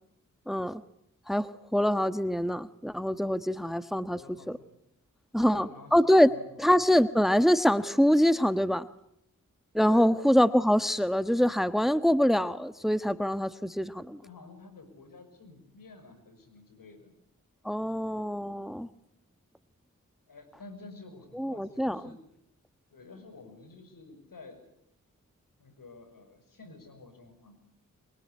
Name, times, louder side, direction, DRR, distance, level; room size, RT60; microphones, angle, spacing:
voice 1, 0.5-0.8 1.3-1.5 1.7-4.2 4.5-4.6 5.3-6.3 6.6-8.9 9.7-14.2 17.6-18.9 21.4-22.0, equal, ahead, 13 dB, 1.3 m, -24 dB
voice 2, 4.1-4.8 5.5-6.9 9.8-10.1 14.2-17.1 18.1-18.4 20.3-22.2 22.9-24.6 25.6-27.6, left 3 dB, 75° left, 9 dB, 6.1 m, -50 dB
24.0 x 23.5 x 9.7 m, 0.75 s
cardioid pair, 40°, 33 cm